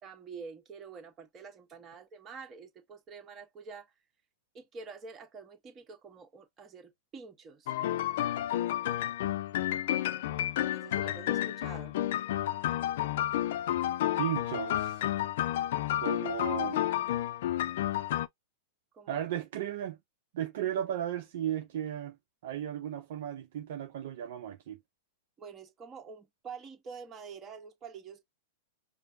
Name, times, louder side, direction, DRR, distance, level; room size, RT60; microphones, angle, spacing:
voice 1, 0.0-3.9 4.5-7.7 10.7-12.0 18.9-19.2 25.4-28.3, right 5 dB, 25° right, 1.4 m, -47 dB
sound 1, 7.7-18.3, left 12 dB, 60° left, 0.4 m, -31 dB
voice 2, 14.2-15.0 16.0-16.8 19.1-20.0 20.3-22.2 22.4-24.8, right 10 dB, 60° right, 0.7 m, -35 dB
5.0 x 2.2 x 2.7 m
hypercardioid pair, 100°, 0 cm